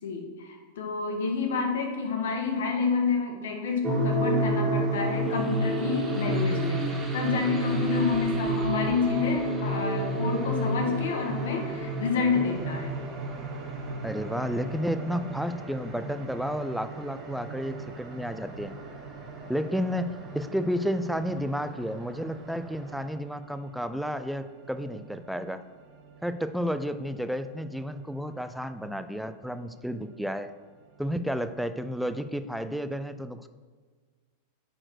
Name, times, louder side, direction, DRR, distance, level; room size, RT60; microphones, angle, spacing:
voice 1, 0.0-12.9, left 5 dB, 80° left, 2 dB, 1.9 m, -29 dB
sound 1, 3.8-23.1, right 1 dB, 20° right, 2.0 m, -31 dB
sound 2, 12.5-32.3, right 5 dB, 50° right, 1.3 m, -47 dB
voice 2, 14.0-18.7 19.5-25.6 26.2-30.5 31.0-33.5, equal, ahead, 11 dB, 0.4 m, -31 dB
8.9 x 4.5 x 6.2 m, 1.5 s
hypercardioid pair, 125°, 0 cm